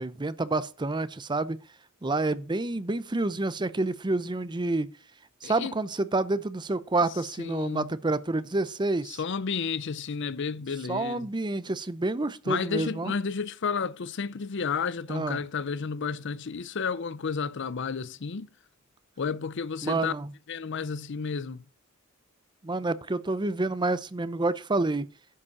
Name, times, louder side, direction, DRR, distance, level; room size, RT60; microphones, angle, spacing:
voice 1, 0.0-1.6 2.0-4.9 5.4-9.2 10.9-13.1 15.1-15.4 19.8-20.3 22.6-25.1, right 2 dB, 20° right, 0.6 m, -28 dB
voice 2, 5.4-5.7 7.4-7.9 9.1-11.3 12.5-18.5 19.2-20.1 20.5-21.6, left 5 dB, 60° left, 0.6 m, -32 dB
11.0 x 5.2 x 7.0 m
head